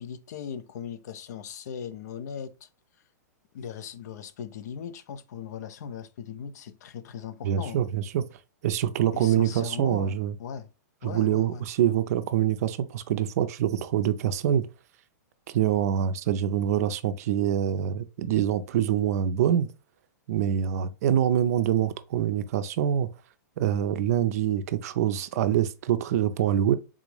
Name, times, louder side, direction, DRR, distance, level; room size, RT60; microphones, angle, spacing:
voice 1, 0.0-2.7 3.5-7.8 9.1-10.7 11.0-11.6, left 7 dB, 65° left, 0.5 m, -38 dB
voice 2, 7.4-8.2 8.6-10.3 11.0-14.7 15.5-19.7 20.3-23.1 23.6-26.8, right 10 dB, 60° right, 0.4 m, -25 dB
3.6 x 2.5 x 3.1 m
hypercardioid pair, 135°, 10 cm